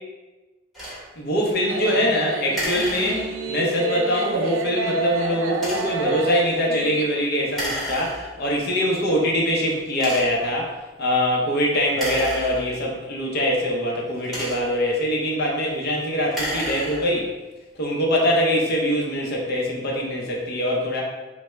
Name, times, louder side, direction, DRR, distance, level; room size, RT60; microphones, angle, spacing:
sound 1, 0.7-1.0 2.5-3.6 5.5-6.1 7.5-8.5 9.2-9.3 9.9-10.5 11.9-13.0 14.0-14.9 16.2-17.3, equal, ahead, 1.0 m, -32 dB
voice 1, 1.2-10.7 11.0-17.3 17.8-21.0, equal, 55° left, -1 dB, 0.7 m, -23 dB
sound 2, 1.7-7.1, right 4 dB, 80° right, 0.3 m, -29 dB
3.3 x 2.1 x 3.1 m, 1.2 s
head